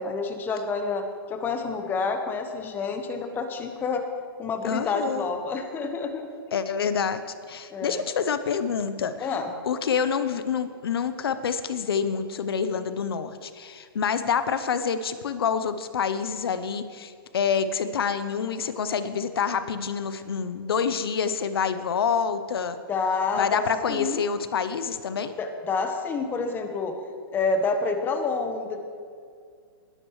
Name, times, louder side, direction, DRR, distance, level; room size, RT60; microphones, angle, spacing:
voice 1, 0.0-4.0 4.4-6.3 7.7-8.0 9.2-9.5 22.9-24.2 25.4-26.9 27.3-28.8, left 4 dB, 15° left, 6 dB, 1.1 m, -28 dB
voice 2, 4.6-5.3 6.5-7.2 7.5-9.4 9.7-22.8 23.3-25.4, left 6 dB, 80° left, 11 dB, 0.8 m, -27 dB
20.0 x 11.0 x 3.2 m, 2.1 s
hypercardioid pair, 145°, 13 cm